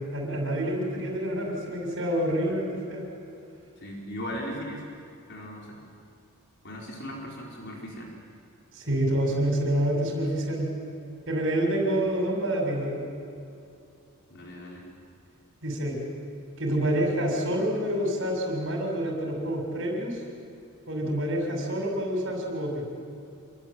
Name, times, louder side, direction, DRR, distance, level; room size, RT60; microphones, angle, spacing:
voice 1, 0.1-3.1 8.7-10.7 11.3-13.0 15.6-16.0 16.6-20.2 20.9-22.8, right 1 dB, 60° right, 1 dB, 6.8 m, -27 dB
voice 2, 3.8-4.8 5.3-5.8 6.6-8.1 14.3-14.8, equal, 55° left, -1 dB, 4.7 m, -37 dB
27.0 x 23.5 x 9.0 m, 2.7 s
head